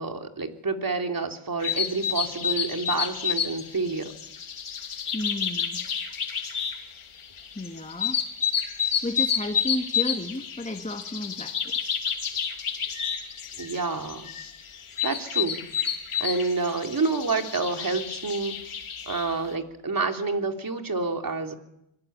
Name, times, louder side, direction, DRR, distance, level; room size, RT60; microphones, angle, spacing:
voice 1, 0.0-4.1 13.6-14.3 15.0-15.6 16.2-18.6 19.1-21.5, right 3 dB, 45° right, 4 dB, 3.4 m, -28 dB
sound 1, 1.6-19.3, left 8 dB, 80° left, 3.0 m, -30 dB
voice 2, 5.1-5.8 7.5-8.2 9.0-12.0, left 1 dB, 15° left, 3 dB, 2.0 m, -33 dB
25.0 x 22.0 x 8.8 m, 0.81 s
cardioid pair, 65°, 49 cm